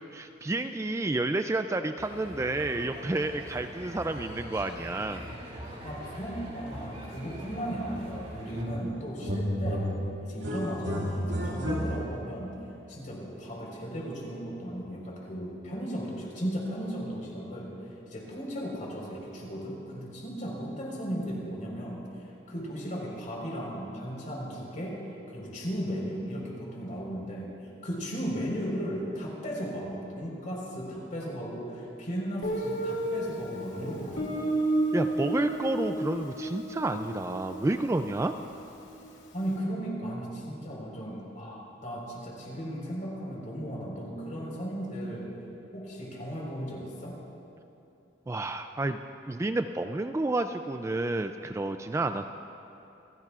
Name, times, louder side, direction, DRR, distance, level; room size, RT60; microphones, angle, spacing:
voice 1, 0.1-5.3 34.9-38.3 48.3-49.0 49.3-52.4, right 2 dB, 15° right, 8 dB, 0.3 m, -30 dB
sound 1, 2.0-8.6, right 1 dB, 40° right, 3.5 m, -43 dB
voice 2, 5.8-9.8 10.2-17.7 18.1-25.0 25.3-27.5 27.8-34.3 39.3-45.3 45.7-47.1, equal, 45° left, -3 dB, 4.3 m, -36 dB
sound 2, 8.5-8.9 9.2-12.3, equal, 85° right, 2.2 m, -32 dB
Guitar, 32.4-39.1, right 1 dB, 85° left, 2.6 m, -32 dB
27.5 x 16.5 x 2.4 m, 2.8 s
head